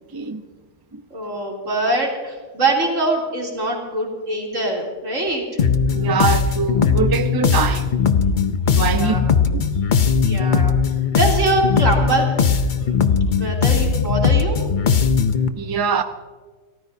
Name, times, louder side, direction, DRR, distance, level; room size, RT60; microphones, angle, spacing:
voice 1, 1.1-5.4 8.9-9.2 10.2-10.7 11.1-12.3 12.7-13.0 13.3-14.6, right 2 dB, 65° right, 3.6 m, -23 dB
sound 1, 5.6-15.5, left 6 dB, 45° left, 0.7 m, -19 dB
voice 2, 5.9-7.9 8.7-9.7 15.6-16.0, right 5 dB, 20° right, 0.6 m, -23 dB
29.5 x 14.5 x 2.7 m
omnidirectional pair, 1.4 m